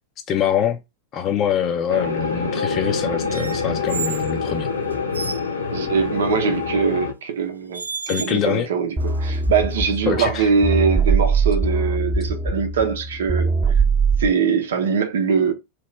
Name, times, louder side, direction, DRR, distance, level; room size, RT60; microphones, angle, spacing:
voice 1, 0.3-0.8 1.1-4.7 8.1-8.7 10.1-10.5, left 9 dB, 30° left, 0.5 m, -24 dB
sound 1, 1.9-7.1, left 4 dB, 80° left, 0.9 m, -25 dB
sound 2, 3.3-4.3 4.9-5.5 6.8-7.0 7.7-8.6 9.0-9.9, right 5 dB, 80° right, 0.3 m, -33 dB
voice 2, 5.7-8.9 9.2-13.5 14.2-15.5, right 6 dB, 60° right, 0.7 m, -22 dB
sound 3, 9.0-14.3, right 4 dB, 15° right, 0.8 m, -21 dB
3.0 x 2.8 x 3.2 m
figure-of-eight pair, 90°, 0 cm